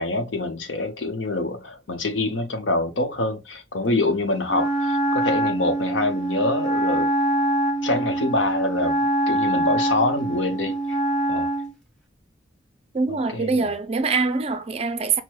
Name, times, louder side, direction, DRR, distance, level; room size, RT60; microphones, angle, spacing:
voice 1, 0.0-7.1 7.8-9.0 9.3-11.0 11.3-11.5 13.3-13.7, left 2 dB, 80° left, 0.8 m, -25 dB
Wind instrument woodwind instrument, 4.5-11.7, right 1 dB, 5° left, 0.7 m, -24 dB
voice 2, 12.9-15.2, right 4 dB, 30° right, 0.4 m, -24 dB
6.2 x 2.1 x 2.2 m
head